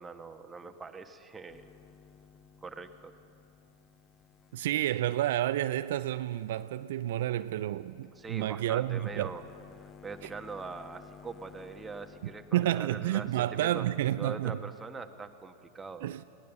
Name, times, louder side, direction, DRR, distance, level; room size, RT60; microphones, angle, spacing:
voice 1, 0.0-1.6 2.6-3.1 8.1-9.4 9.8-13.9 14.2-16.1, right 4 dB, 15° right, 1.3 m, -42 dB
sound 1, 1.5-12.8, left 7 dB, 20° left, 0.6 m, -56 dB
voice 2, 4.5-9.3 10.2-10.3 12.2-14.6 16.0-16.2, right 13 dB, 65° right, 0.4 m, -30 dB
21.0 x 18.0 x 7.1 m
figure-of-eight pair, 95°, 0 cm